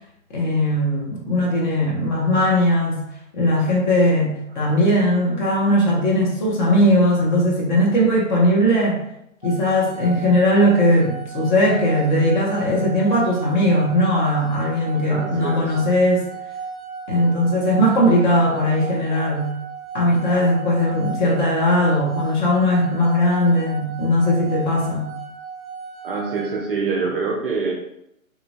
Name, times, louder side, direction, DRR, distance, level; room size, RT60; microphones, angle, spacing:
voice 1, 0.3-3.0 3.3-9.0 9.4-16.2 17.1-19.5 19.9-25.1, equal, 35° left, -3 dB, 0.9 m, -19 dB
sound 1, 9.4-26.6, right 5 dB, 15° left, 0.3 m, -35 dB
voice 2, 15.1-15.7 26.0-27.7, right 4 dB, 45° right, 0 dB, 0.4 m, -25 dB
3.1 x 2.4 x 2.2 m, 0.77 s
hypercardioid pair, 140°, 42 cm